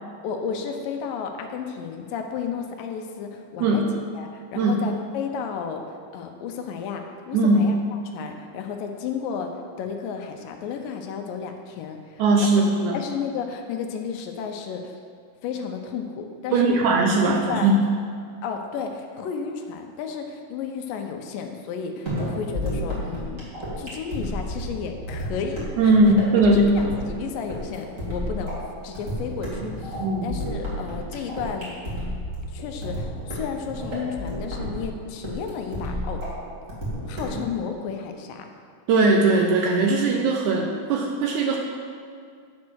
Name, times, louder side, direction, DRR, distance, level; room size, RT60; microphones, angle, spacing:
voice 1, 0.2-3.8 4.1-5.8 6.1-9.5 9.8-12.5 12.9-15.0 15.4-16.8 17.3-17.7 18.4-23.4 23.8-26.0 26.4-31.8 32.5-36.4 37.0-38.5, left 6 dB, 80° left, 4 dB, 2.4 m, -33 dB
voice 2, 7.3-7.7 12.2-13.0 16.5-17.8 25.8-26.7 30.0-30.3 38.9-41.6, right 2 dB, 75° right, 0 dB, 1.9 m, -19 dB
sound 1, 22.1-37.5, equal, 25° right, 2.0 m, -31 dB
9.5 x 5.4 x 6.2 m, 2.1 s
omnidirectional pair, 4.0 m